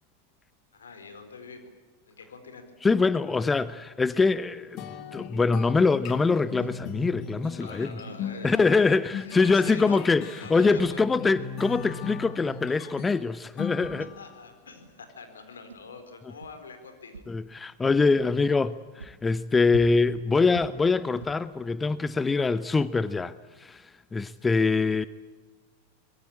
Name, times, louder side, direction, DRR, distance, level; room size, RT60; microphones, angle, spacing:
voice 1, 0.7-1.7 2.1-2.6 3.4-3.6 7.6-11.1 14.2-17.2 18.2-18.3, left 4 dB, 70° left, 4.3 m, -45 dB
voice 2, 2.8-4.8 5.1-7.9 8.4-14.1 17.3-25.1, left 4 dB, 15° left, 0.7 m, -24 dB
sound 1, 4.8-14.4, left 7 dB, 40° left, 1.9 m, -39 dB
sound 2, 6.5-6.9 8.0-8.4 9.6-10.0 10.7-11.1 11.7-11.9 12.9-13.1 13.8-14.0 14.8-14.9 15.7-15.8 16.4-16.5 17.1-17.4 18.1-18.2 19.0-19.1 19.7-20.1 20.5-20.8 21.2-21.4, right 4 dB, 75° right, 2.0 m, -43 dB
24.5 x 22.0 x 8.7 m
figure-of-eight pair, 90°, 0 cm